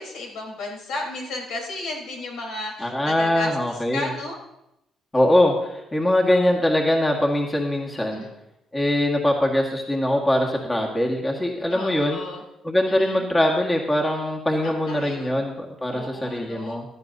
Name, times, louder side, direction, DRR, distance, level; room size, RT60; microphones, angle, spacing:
voice 1, 0.0-4.4 8.0-8.3 11.7-12.4 13.0-13.3 14.6-15.4 15.9-16.8, left 2 dB, 85° left, 0 dB, 3.8 m, -34 dB
voice 2, 2.8-4.1 5.1-8.3 8.7-12.2 12.6-16.8, left 1 dB, 15° left, 0 dB, 1.7 m, -22 dB
15.5 x 12.0 x 2.7 m, 0.87 s
cardioid pair, 110°, 0 cm